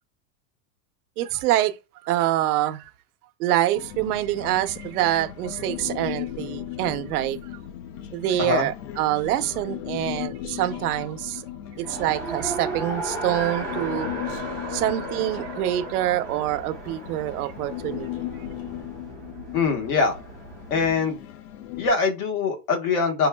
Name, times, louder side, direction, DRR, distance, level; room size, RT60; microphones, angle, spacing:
voice 1, 1.2-1.8 2.0-2.9 3.4-7.4 8.1-11.4 11.8-14.1 14.7-18.1, right 13 dB, 70° right, 0.7 m, -25 dB
Human voice, 3.7-21.9, left 12 dB, 80° left, 0.6 m, -37 dB
Race car auto racing, 11.8-20.9, right 2 dB, 5° left, 0.4 m, -35 dB
voice 2, 19.5-20.2 20.7-21.2 21.8-23.3, left 4 dB, 60° left, 1.4 m, -23 dB
5.3 x 2.3 x 2.2 m
supercardioid pair, 150°, 47 cm